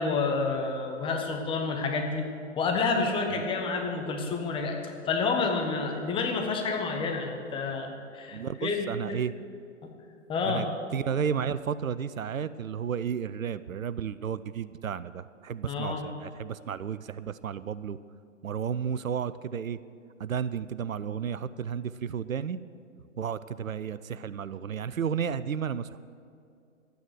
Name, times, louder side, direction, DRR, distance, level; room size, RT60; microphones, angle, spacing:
voice 1, 0.0-2.3 2.6-9.2 10.3-10.6 15.7-16.1, left 4 dB, 15° left, 2 dB, 1.2 m, -29 dB
voice 2, 8.3-9.3 10.4-10.7 10.9-18.0 18.4-19.8 20.2-22.6 23.2-26.0, right 7 dB, 85° right, 15 dB, 0.6 m, -32 dB
12.5 x 9.4 x 6.6 m, 2.4 s
figure-of-eight pair, 125°, 39 cm